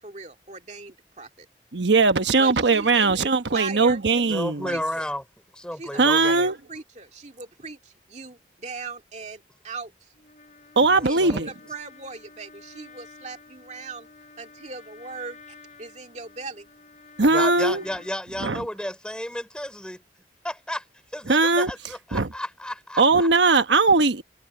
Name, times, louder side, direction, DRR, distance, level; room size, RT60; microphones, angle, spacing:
voice 1, 0.0-1.5 2.4-4.0 4.6-5.1 5.7-9.9 11.0-14.1 14.4-15.4 15.8-16.7, right 4 dB, 40° right, 2.3 m, -39 dB
voice 2, 1.7-4.7 6.0-6.6 10.8-11.5 17.2-17.8 18.4-18.6 21.3-21.7 22.1-22.3 23.0-24.2, right 3 dB, 80° right, 1.1 m, -20 dB
voice 3, 4.3-5.2 5.5-6.5 10.9-11.4 17.3-20.0 20.4-20.8 21.1-23.5, left 1 dB, 5° left, 3.7 m, -32 dB
Trumpet, 10.1-18.2, left 4 dB, 40° left, 4.3 m, -50 dB
head